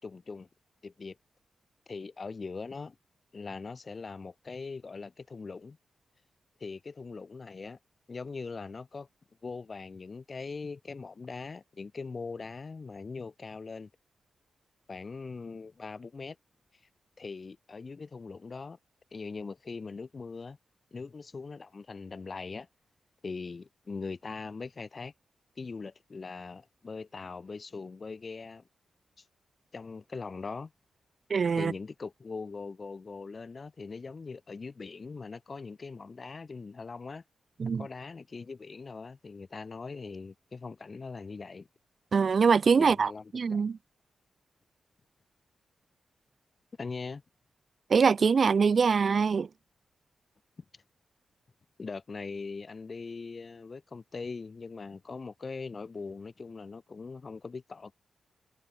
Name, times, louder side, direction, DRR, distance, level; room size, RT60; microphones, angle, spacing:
voice 1, 0.0-0.5 0.8-1.2 1.9-3.0 3.3-5.8 6.6-7.8 8.1-9.1 9.4-13.9 14.9-16.4 17.2-18.8 19.1-20.6 20.9-22.7 23.2-25.1 25.6-28.6 29.2-29.3 29.7-30.7 31.5-37.2 37.8-41.7 42.7-43.7 46.8-47.2 51.8-57.9, left 4 dB, 35° left, 5.4 m, -41 dB
voice 2, 31.3-31.7 37.6-37.9 42.1-43.8 47.9-49.5, right 5 dB, 50° right, 0.7 m, -24 dB
wide cardioid pair, 125°, 0 cm